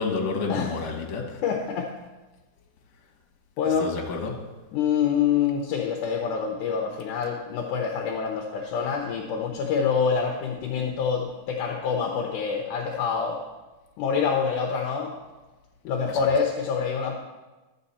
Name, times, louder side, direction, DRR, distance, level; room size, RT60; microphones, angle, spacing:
voice 1, 0.0-1.4 3.8-4.4 16.1-16.2, left 4 dB, 55° left, 1 dB, 2.1 m, -29 dB
voice 2, 1.4-1.9 3.6-3.9 4.7-13.4 14.0-15.1 15.8-17.2, left 6 dB, 75° left, 2 dB, 1.9 m, -26 dB
12.5 x 7.8 x 4.2 m, 1.2 s
omnidirectional pair, 4.5 m